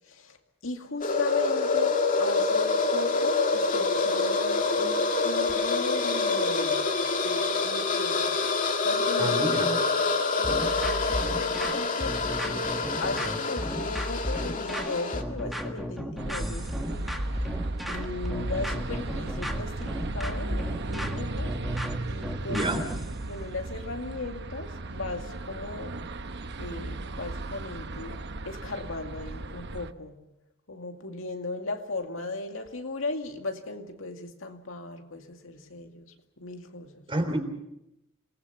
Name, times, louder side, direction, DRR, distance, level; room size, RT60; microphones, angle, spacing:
voice 1, 0.1-0.4 0.6-6.9 7.2-8.4 8.8-9.6 10.2-12.7 13.0-17.1 17.4-22.8 23.3-26.0 26.6-30.2 30.7-36.1 36.4-37.1, left 2 dB, 75° left, 2.2 m, -37 dB
sound 1, 1.0-15.2, left 3 dB, 40° left, 2.0 m, -26 dB
voice 2, 9.2-9.8 22.5-22.9 37.1-37.4, right 1 dB, 25° right, 3.6 m, -28 dB
sound 2, 10.4-23.1, equal, ahead, 1.8 m, -34 dB
sound 3, 16.2-29.9, right 2 dB, 60° right, 1.0 m, -36 dB
27.5 x 19.5 x 7.0 m
head